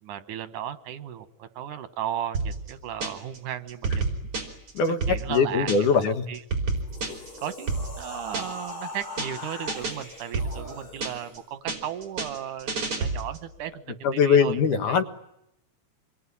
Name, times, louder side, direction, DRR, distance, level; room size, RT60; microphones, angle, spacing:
voice 1, 0.0-4.1 5.1-6.4 7.4-14.6 14.9-15.0, right 10 dB, 85° right, 11 dB, 2.8 m, -35 dB
sound 1, 2.3-3.4 3.7-6.0 6.3-8.7 9.0-9.4 9.7-11.4 11.7-13.5, right 3 dB, 45° right, 5.5 m, -30 dB
voice 2, 4.7-6.2 14.0-15.0, left 5 dB, 90° left, 7 dB, 3.1 m, -22 dB
sound 2, 6.8-11.4, left 2 dB, 30° left, 5.0 m, -40 dB
27.0 x 22.0 x 9.9 m, 0.82 s
omnidirectional pair, 3.4 m